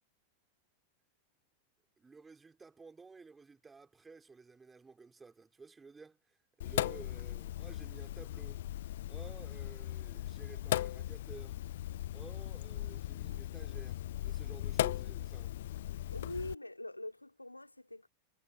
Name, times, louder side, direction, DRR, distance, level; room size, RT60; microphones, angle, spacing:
voice 1, 2.0-8.6 9.1-11.6 12.1-15.6, right 4 dB, 15° right, 3.6 m, -54 dB
Sink (filling or washing), 6.6-16.5, left 13 dB, 55° left, 0.6 m, -38 dB
voice 2, 16.1-18.1, left 2 dB, 85° left, 3.0 m, -44 dB
figure-of-eight pair, 90°, 0 cm